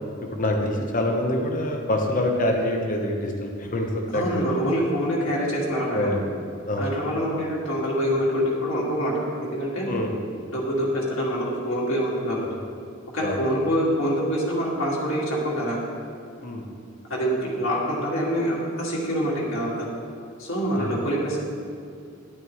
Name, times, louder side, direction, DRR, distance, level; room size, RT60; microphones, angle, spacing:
voice 1, 0.3-4.5 5.9-6.2 6.7-6.9 9.8-10.1 12.4-12.5 13.2-13.4 16.4-16.6 20.7-20.9, left 1 dB, 40° left, 1 dB, 1.1 m, -25 dB
voice 2, 4.1-6.1 6.8-9.9 10.5-12.4 13.1-15.8 17.1-19.9 20.4-21.4, equal, 70° left, -5 dB, 2.3 m, -25 dB
11.5 x 8.7 x 3.2 m, 2.4 s
head